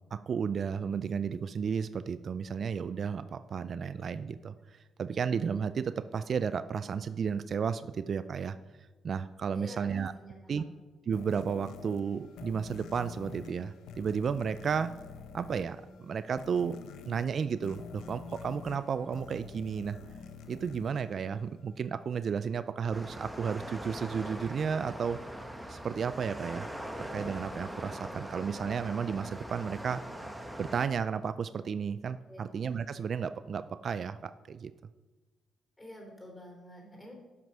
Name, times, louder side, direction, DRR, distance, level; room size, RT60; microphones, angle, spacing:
voice 1, 0.1-8.6 9.0-10.1 10.5-10.6 11.1-14.9 15.3-16.8 17.1-20.0 20.5-25.2 25.7-26.7 27.1-30.0 30.6-34.7, right 6 dB, 50° right, 13 dB, 0.3 m, -33 dB
voice 2, 9.5-10.7 32.3-32.5 35.8-37.1, left 1 dB, 15° left, 1 dB, 3.4 m, -48 dB
sound 1, 11.1-21.9, left 6 dB, 85° left, 0.7 m, -48 dB
sound 2, 22.9-30.9, right 1 dB, 5° right, 1.0 m, -41 dB
10.5 x 6.1 x 5.5 m, 1.2 s
cardioid pair, 90°, 0 cm